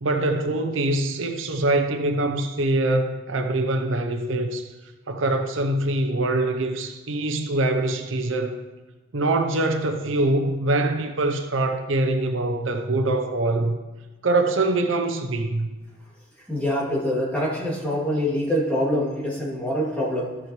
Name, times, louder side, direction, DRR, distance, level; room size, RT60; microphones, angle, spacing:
voice 1, 0.0-4.7 5.1-8.6 9.1-13.8 14.2-15.7, right 2 dB, 85° right, 0.8 m, -24 dB
voice 2, 16.5-20.4, equal, 10° left, 2.7 m, -25 dB
13.5 x 7.6 x 3.2 m
head